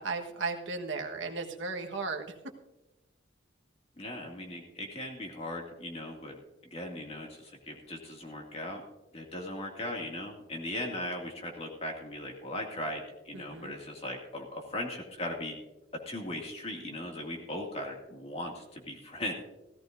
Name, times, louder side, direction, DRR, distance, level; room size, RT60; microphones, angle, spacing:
voice 1, 0.0-2.3 13.3-13.7, right 4 dB, 85° right, 3 dB, 1.4 m, -35 dB
voice 2, 4.0-6.4 6.7-8.8 9.1-15.6 16.1-19.3, left 1 dB, 35° left, 1 dB, 2.2 m, -38 dB
17.0 x 14.0 x 2.6 m, 1.0 s
head